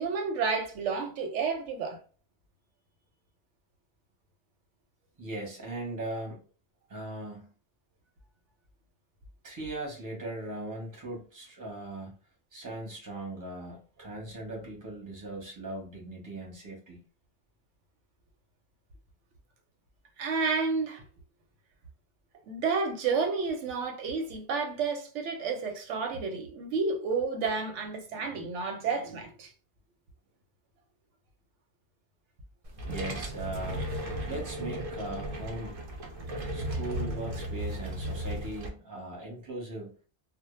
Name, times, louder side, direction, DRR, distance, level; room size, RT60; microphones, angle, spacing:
voice 1, 0.0-2.0 20.2-21.0 22.5-29.5, right 4 dB, 85° right, 0.9 m, -30 dB
voice 2, 5.2-6.4 6.9-7.5 9.4-12.2 12.5-17.0 32.9-33.9 34.2-35.8 36.5-39.9, right 2 dB, 20° right, 0.7 m, -39 dB
sound 1, 32.6-38.7, right 1 dB, 55° right, 0.4 m, -35 dB
2.1 x 2.0 x 3.0 m
omnidirectional pair, 1.2 m